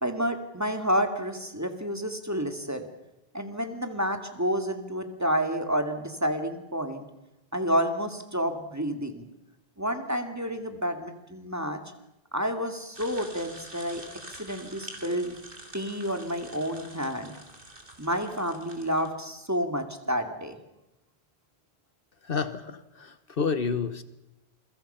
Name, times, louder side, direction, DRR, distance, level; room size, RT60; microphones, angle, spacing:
voice 1, 0.0-2.9 3.3-7.1 7.5-9.3 9.8-11.8 12.3-14.0 14.3-15.3 15.7-17.3 18.0-20.6, equal, 15° right, 6 dB, 2.3 m, -29 dB
sound 1, 12.9-19.1, right 1 dB, 60° right, 3.8 m, -46 dB
voice 2, 22.2-24.0, left 5 dB, 65° left, 12 dB, 1.3 m, -30 dB
28.0 x 23.5 x 5.7 m, 0.96 s
omnidirectional pair, 1.0 m